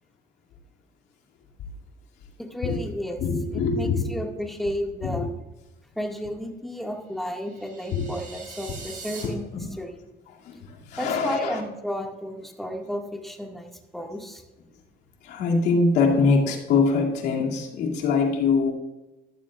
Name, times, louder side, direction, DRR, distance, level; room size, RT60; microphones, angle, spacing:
voice 1, 2.4-3.2 3.5-5.3 6.0-9.4 9.8-10.0 11.0-14.4, equal, ahead, 1 dB, 1.8 m, -33 dB
voice 2, 3.2-4.3 5.0-5.3 7.9-8.1 9.2-9.7 10.3-11.6 15.2-18.7, left 4 dB, 80° left, -2 dB, 2.5 m, -24 dB
sound 1, 7.2-9.3, right 4 dB, 50° right, 4.2 m, -42 dB
15.0 x 11.0 x 2.4 m, 1.1 s
cardioid pair, 110°, 17 cm